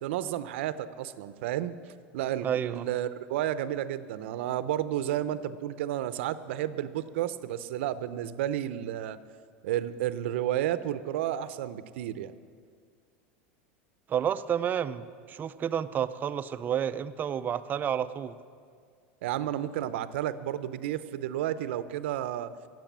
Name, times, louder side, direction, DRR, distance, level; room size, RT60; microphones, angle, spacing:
voice 1, 0.0-1.8 2.1-9.2 9.6-12.3 19.2-22.5, right 12 dB, 80° right, 14 dB, 0.6 m, -31 dB
voice 2, 2.4-2.9 14.1-18.4, right 9 dB, 30° right, 13 dB, 0.5 m, -30 dB
16.5 x 7.6 x 7.4 m, 2.1 s
supercardioid pair, 130°, 6 cm